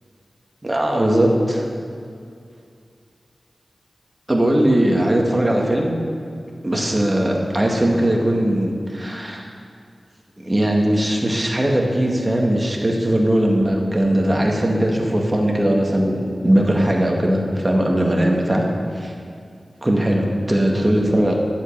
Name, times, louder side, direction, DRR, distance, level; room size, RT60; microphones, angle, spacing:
voice 1, 0.6-1.7 4.3-5.9 6.6-9.5 10.4-18.6 19.0-19.1 19.8-21.3, right 1 dB, 20° right, 0 dB, 2.0 m, -19 dB
13.0 x 5.6 x 9.2 m, 2.3 s
wide cardioid pair, 85°, 0 cm